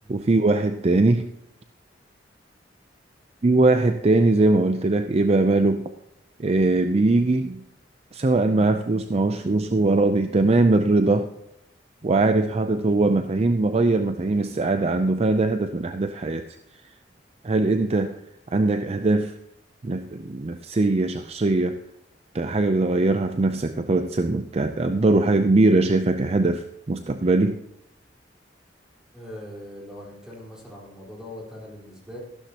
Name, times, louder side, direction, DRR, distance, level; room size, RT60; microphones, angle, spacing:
voice 1, 0.1-1.3 3.4-5.9 6.4-7.6 8.1-11.3 12.0-16.6 17.4-18.1 18.5-19.3 19.8-21.8 22.3-27.6, right 2 dB, 35° right, 8 dB, 0.5 m, -21 dB
voice 2, 29.1-32.2, left 1 dB, 5° right, -4 dB, 4.2 m, -41 dB
14.5 x 12.0 x 2.9 m, 0.84 s
head